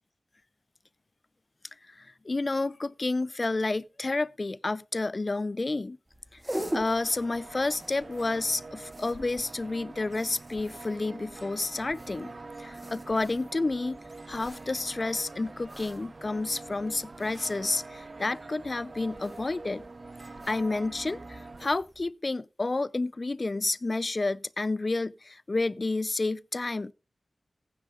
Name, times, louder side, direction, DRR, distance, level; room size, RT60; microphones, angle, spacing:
voice 1, 2.0-6.0 6.7-12.3 12.6-14.0 14.3-19.8 20.5-26.9, left 2 dB, 40° left, 0.5 m, -30 dB
sound 1, 6.1-22.1, equal, 10° right, 2.3 m, -44 dB
sound 2, 6.6-21.7, right 3 dB, 45° right, 0.6 m, -45 dB
15.0 x 9.8 x 3.7 m
wide cardioid pair, 65°, 0 cm